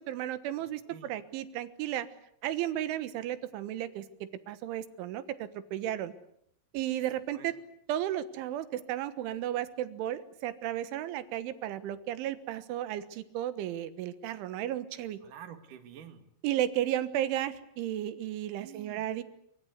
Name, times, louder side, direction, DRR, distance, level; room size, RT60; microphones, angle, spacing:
voice 1, 0.0-2.1 2.4-4.1 4.5-6.1 6.7-7.5 7.9-15.2 16.4-19.2, right 12 dB, 80° right, 13 dB, 3.8 m, -34 dB
voice 2, 0.6-1.1 7.3-7.5 15.2-16.3 18.6-19.1, right 9 dB, 55° right, 8 dB, 3.0 m, -49 dB
26.0 x 23.5 x 8.2 m, 0.71 s
omnidirectional pair, 5.4 m